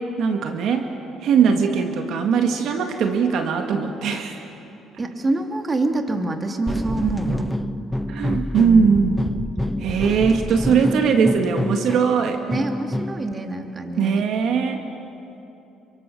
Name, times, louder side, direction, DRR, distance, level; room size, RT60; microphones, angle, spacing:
voice 1, 0.2-0.8 1.2-4.4 8.1-9.2 9.8-12.4 14.0-14.8, right 6 dB, 70° right, 5 dB, 1.9 m, -20 dB
voice 2, 5.0-7.5 8.6-9.0 12.5-14.2, right 2 dB, 30° right, 4 dB, 2.7 m, -26 dB
sound 1, 6.7-13.3, left 1 dB, 5° left, 0.6 m, -28 dB
29.0 x 24.5 x 7.0 m, 2.9 s
supercardioid pair, 85°, 0 cm